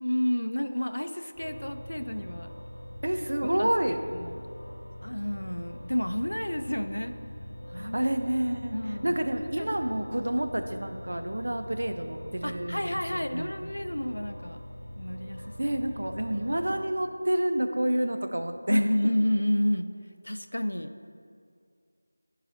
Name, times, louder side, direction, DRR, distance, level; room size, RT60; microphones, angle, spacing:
voice 1, 0.0-2.5 3.4-3.7 4.1-4.4 5.0-7.2 7.7-8.0 8.7-9.2 9.6-9.9 12.4-14.6 14.9-15.8 18.7-19.9 20.2-20.9, left 1 dB, 80° left, 9 dB, 0.5 m, -30 dB
sound 1, 1.3-16.8, equal, 20° left, 1.6 m, -43 dB
voice 2, 3.0-4.0 7.7-8.8 9.0-13.5 15.6-18.8, right 1 dB, 65° right, 6 dB, 0.6 m, -29 dB
11.5 x 4.8 x 2.6 m, 2.2 s
figure-of-eight pair, 170°, 0 cm